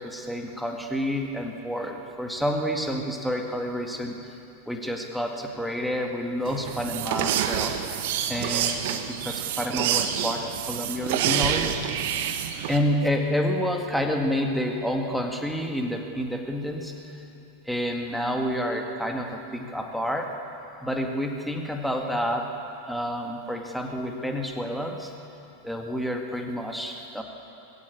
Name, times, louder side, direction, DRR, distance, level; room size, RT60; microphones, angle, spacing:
voice 1, 0.0-4.2 4.7-7.9 8.3-11.7 12.7-17.2 17.7-20.3 20.8-22.5 22.9-25.1 25.6-27.2, equal, ahead, 2 dB, 2.0 m, -29 dB
sound 1, 6.4-12.8, right 9 dB, 50° right, 1.2 m, -27 dB
20.0 x 16.0 x 8.8 m, 2.9 s
figure-of-eight pair, 90°, 0 cm